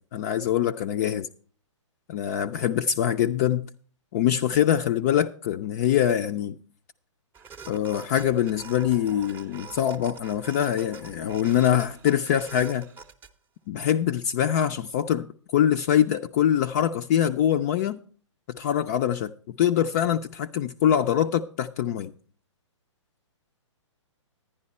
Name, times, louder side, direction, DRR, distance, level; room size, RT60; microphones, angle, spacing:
voice 1, 0.1-1.3 2.1-3.7 4.1-6.6 7.7-12.9 13.7-15.3 15.5-18.0 18.5-22.1, left 10 dB, 30° left, 0.4 m, -24 dB
sound 1, 7.3-13.3, right 5 dB, 15° right, 0.6 m, -45 dB
10.5 x 9.9 x 4.2 m
hypercardioid pair, 140°, 16 cm